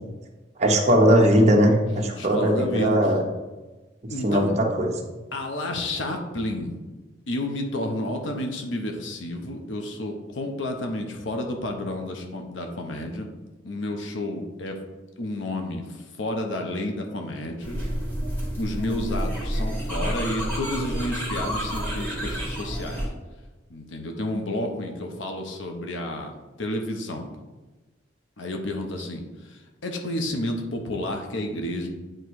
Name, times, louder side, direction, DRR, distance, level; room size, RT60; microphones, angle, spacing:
voice 1, 0.6-3.2 4.2-4.9, equal, 35° right, 1 dB, 1.0 m, -19 dB
voice 2, 2.2-3.1 4.1-4.5 5.3-6.8 7.3-13.3 13.6-14.8 15.2-17.8 18.6-23.0 23.7-26.3 26.6-27.3 28.4-31.9, left 1 dB, 80° left, 3 dB, 0.9 m, -30 dB
sound 1, 17.6-23.1, equal, 10° left, 2.1 m, -29 dB
8.9 x 3.1 x 4.7 m, 1.2 s
head